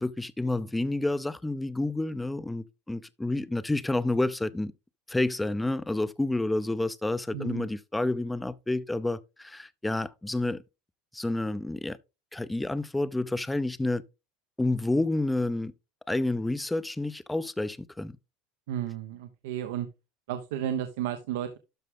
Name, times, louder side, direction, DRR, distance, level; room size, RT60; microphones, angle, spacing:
voice 1, 0.0-4.7 5.1-10.6 11.1-12.0 12.3-14.0 14.6-15.7 16.1-18.2, left 2 dB, 5° left, 0.6 m, -29 dB
voice 2, 7.3-7.7 18.7-19.9 20.3-21.6, right 10 dB, 85° right, 1.0 m, -33 dB
12.5 x 4.8 x 3.6 m
supercardioid pair, 125°, 0 cm